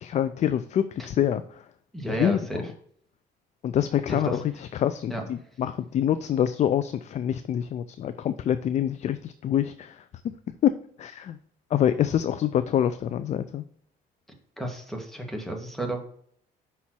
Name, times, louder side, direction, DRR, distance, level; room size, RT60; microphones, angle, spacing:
voice 1, 0.0-1.6 2.1-2.7 3.6-10.0 10.6-10.7 11.0-11.4 11.7-13.6, left 10 dB, 45° left, 12 dB, 0.4 m, -26 dB
voice 2, 1.9-2.6 4.1-4.4 5.1-5.2 14.6-16.0, right 1 dB, ahead, 2 dB, 1.5 m, -32 dB
5.6 x 4.3 x 6.1 m, 0.64 s
cardioid pair, 110°, 17 cm